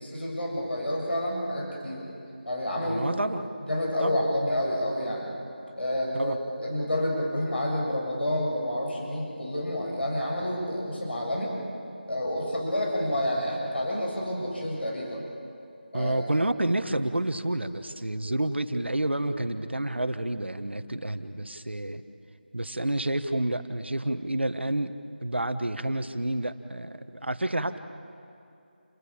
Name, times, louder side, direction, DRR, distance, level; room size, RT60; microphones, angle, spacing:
voice 1, 0.0-2.0 2.5-3.0 3.7-5.3 5.8-11.5 12.1-15.2 15.9-16.1, left 1 dB, 75° left, -2 dB, 6.9 m, -29 dB
voice 2, 2.8-3.5 4.0-4.2 6.1-6.4 15.9-22.0 22.5-24.9 25.2-26.9 27.2-27.8, right 1 dB, 90° right, 9 dB, 1.5 m, -29 dB
29.5 x 17.0 x 8.8 m, 2.6 s
figure-of-eight pair, 170°, 6 cm